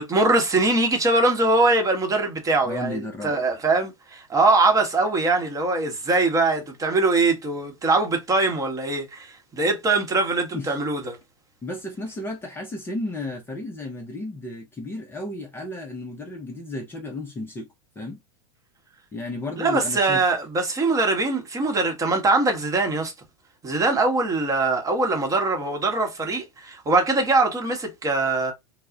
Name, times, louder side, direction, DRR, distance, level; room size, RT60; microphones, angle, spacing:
voice 1, 0.0-11.2 19.6-23.1 23.6-28.5, right 3 dB, 20° right, 0.9 m, -22 dB
voice 2, 2.6-3.4 10.5-10.8 11.6-17.7 18.0-18.2 19.1-20.2, left 2 dB, 15° left, 0.5 m, -33 dB
2.3 x 2.0 x 3.6 m
hypercardioid pair, 100°, 17 cm